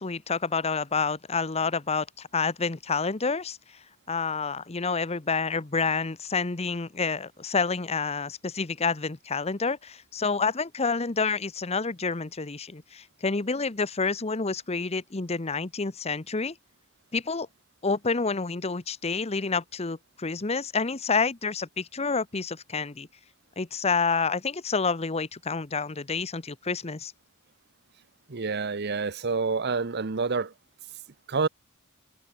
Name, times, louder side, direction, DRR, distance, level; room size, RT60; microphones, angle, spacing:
voice 1, 0.0-3.6 4.1-16.5 17.1-17.5 17.8-23.1 23.6-27.1, left 4 dB, 30° left, 0.9 m, -28 dB
voice 2, 28.3-30.5 31.3-31.5, right 4 dB, 50° right, 0.9 m, -28 dB
head